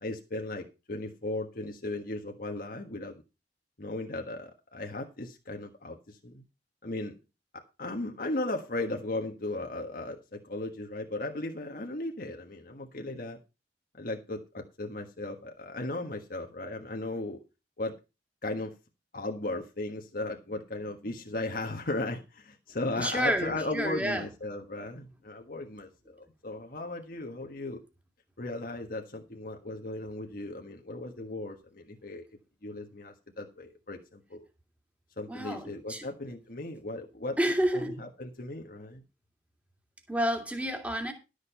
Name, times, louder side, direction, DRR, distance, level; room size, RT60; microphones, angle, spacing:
voice 1, 0.0-3.2 3.8-6.4 6.8-7.2 7.5-13.4 13.9-17.4 17.8-17.9 18.4-18.7 19.1-27.8 28.4-32.3 32.6-34.4 35.2-39.0, left 2 dB, 55° left, 1.4 m, -36 dB
voice 2, 23.0-24.3 35.3-36.0 37.4-38.0 40.1-41.1, equal, 10° right, 2.3 m, -29 dB
12.5 x 6.6 x 5.5 m
head